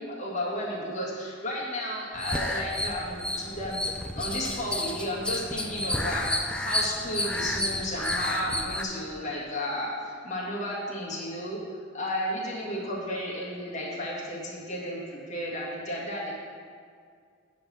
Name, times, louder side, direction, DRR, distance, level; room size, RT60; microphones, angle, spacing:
voice 1, 0.0-11.6 11.9-16.3, left 1 dB, 40° left, -6 dB, 1.8 m, -33 dB
sound 1, 2.2-8.9, left 1 dB, 5° left, 0.4 m, -31 dB
6.9 x 5.2 x 6.2 m, 2.1 s
head